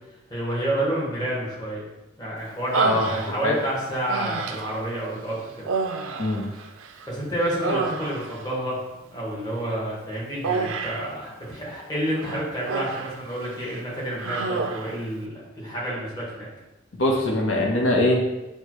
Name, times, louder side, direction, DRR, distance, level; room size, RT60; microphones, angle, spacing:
voice 1, 0.3-1.8 2.2-5.7 7.1-8.8 9.1-15.3 15.6-16.5, right 1 dB, 20° left, -6 dB, 1.3 m, -29 dB
Human voice, 2.7-3.6 4.1-4.8 5.6-7.1 7.4-8.4 10.4-11.1 12.1-13.2 13.5-13.8 14.2-15.0, right 4 dB, 85° right, 0.4 m, -29 dB
voice 2, 16.9-18.2, left 1 dB, 75° left, -1 dB, 0.9 m, -22 dB
6.5 x 2.3 x 3.0 m, 0.99 s
head